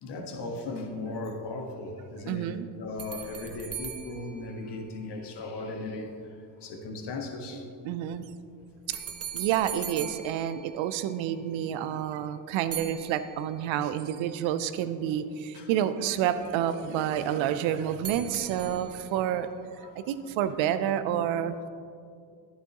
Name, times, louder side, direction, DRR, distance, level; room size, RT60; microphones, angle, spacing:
voice 1, 0.0-7.7 15.5-15.7 19.8-20.1, left 2 dB, 55° left, 3 dB, 1.5 m, -37 dB
voice 2, 2.3-2.7 7.8-8.3 8.9-9.0 9.3-19.5 20.0-21.7, right 10 dB, 65° right, 12 dB, 0.7 m, -29 dB
sound 1, 3.0-5.4 8.9-11.4 12.7-13.9 18.0-19.3, right 8 dB, 30° right, 0.9 m, -41 dB
11.0 x 9.3 x 3.0 m, 2.4 s
hypercardioid pair, 60°, 50 cm